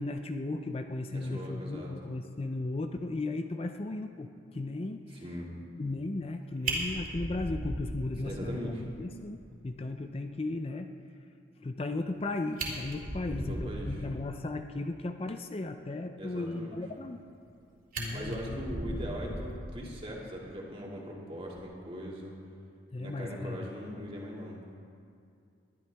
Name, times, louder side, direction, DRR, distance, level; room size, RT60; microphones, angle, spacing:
voice 1, 0.0-5.2 5.8-10.9 11.6-17.2 18.0-18.6 22.9-23.7, left 2 dB, 30° left, 6 dB, 0.5 m, -36 dB
voice 2, 1.1-1.9 5.2-5.5 8.2-8.8 13.2-14.1 16.2-16.8 18.1-22.4 23.0-24.8, equal, 30° right, -3 dB, 2.2 m, -40 dB
Fire, 6.2-6.3 6.6-8.6 8.9-9.0 9.4-9.5 9.8-9.9 12.1-12.2 12.5-14.2 17.0-17.6 17.9-20.1 21.4-21.6, right 1 dB, 50° right, 2.6 m, -37 dB
20.5 x 12.0 x 3.5 m, 2.5 s
head